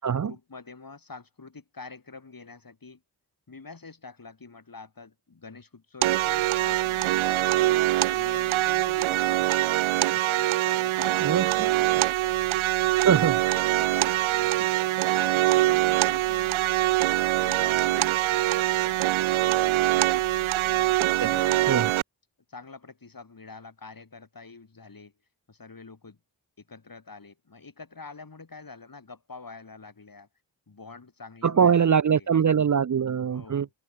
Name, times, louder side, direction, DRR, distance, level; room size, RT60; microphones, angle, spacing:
voice 1, 0.2-3.0 3.5-7.6 8.0-9.6 10.1-11.7 13.8-16.6 17.4-19.1 19.3-20.1 20.6-22.0 22.5-25.1 25.5-26.2 26.7-30.3 30.7-32.3 33.2-33.7, left 4 dB, 45° left, 6.5 m, -46 dB
sound 1, 6.0-22.0, right 16 dB, 80° right, 0.6 m, -24 dB
voice 2, 13.1-13.4 21.2-21.3 21.7-21.9 31.4-33.7, right 7 dB, 40° right, 0.7 m, -22 dB
supercardioid pair, 40°, 48 cm